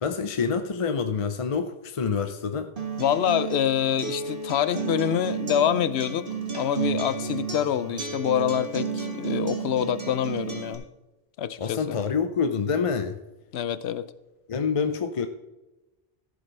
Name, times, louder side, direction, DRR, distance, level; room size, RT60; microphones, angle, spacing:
voice 1, 0.0-2.7 11.6-13.2 14.5-15.3, left 5 dB, 40° left, 8 dB, 0.5 m, -27 dB
Acoustic guitar, 2.8-10.7, right 5 dB, 55° right, 1.8 m, -32 dB
voice 2, 3.0-6.3 6.5-10.8 11.4-12.0 13.5-14.1, left 9 dB, 75° left, 15 dB, 0.9 m, -26 dB
15.0 x 7.9 x 3.3 m, 1.0 s
omnidirectional pair, 1.1 m